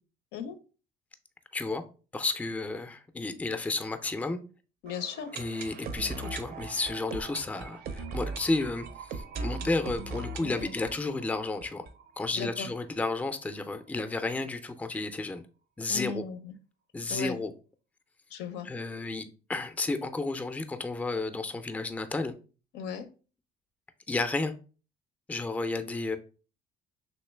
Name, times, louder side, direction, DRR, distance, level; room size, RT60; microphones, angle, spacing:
voice 1, 1.5-1.8 2.1-4.4 5.3-11.8 12.2-15.4 15.8-16.2 16.9-17.5 18.6-19.2 19.5-22.4 24.1-24.5 25.3-26.2, left 3 dB, 10° left, 0.3 m, -32 dB
voice 2, 4.8-5.3 10.4-10.7 12.4-12.7 15.9-16.5 17.1-17.4 18.3-18.7 22.7-23.1, left 6 dB, 90° left, 0.5 m, -37 dB
sound 1, 4.9-12.6 12.9-13.0 13.2-13.3 13.8-13.9, right 3 dB, 60° right, 0.5 m, -39 dB
3.1 x 2.9 x 3.2 m
cardioid pair, 110°, 17 cm